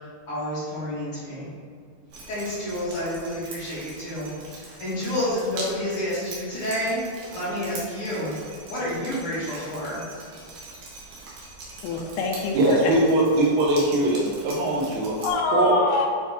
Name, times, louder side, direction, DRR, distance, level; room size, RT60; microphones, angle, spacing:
voice 1, 0.0-1.5 2.3-7.0 7.3-8.3 8.7-10.1, left 1 dB, 60° left, -10 dB, 1.5 m, -29 dB
Drip, 2.1-15.3, right 2 dB, 70° right, 2.7 m, -42 dB
voice 2, 11.8-12.9 15.2-16.1, left 3 dB, 80° left, 1 dB, 2.3 m, -25 dB
voice 3, 12.5-15.1 15.5-15.7, right 2 dB, 85° right, -4 dB, 3.5 m, -21 dB
8.9 x 3.1 x 3.6 m, 2.1 s
omnidirectional pair, 4.9 m